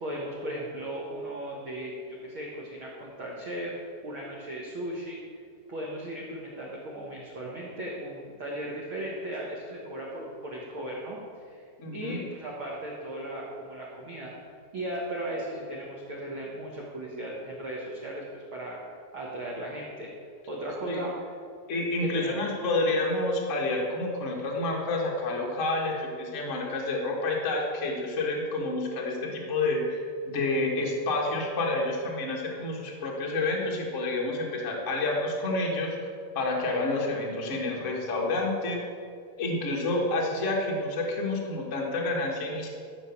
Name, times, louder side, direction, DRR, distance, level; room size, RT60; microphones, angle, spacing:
voice 1, 0.0-3.7 4.0-5.2 5.7-11.2 11.4-11.6 11.9-14.3 14.7-18.8 19.1-20.1 20.5-21.1 22.1-22.5, right 1 dB, 85° right, -3 dB, 1.1 m, -36 dB
voice 2, 11.8-12.2 20.9-21.0 21.7-36.0 36.3-38.8 39.4-42.7, left 2 dB, 70° left, -2 dB, 0.6 m, -29 dB
14.0 x 5.3 x 7.1 m, 2.2 s
omnidirectional pair, 4.6 m